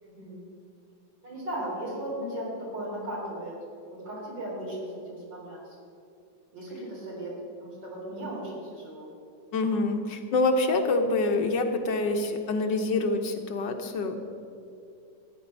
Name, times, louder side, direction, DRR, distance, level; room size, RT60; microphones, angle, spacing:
voice 1, 0.0-0.4 1.2-3.5 3.9-5.8 6.5-7.3 7.6-9.1, right 1 dB, 75° right, -4 dB, 4.5 m, -36 dB
voice 2, 9.5-14.1, left 2 dB, 75° left, 5 dB, 1.7 m, -26 dB
15.0 x 9.6 x 5.4 m, 2.5 s
omnidirectional pair, 2.0 m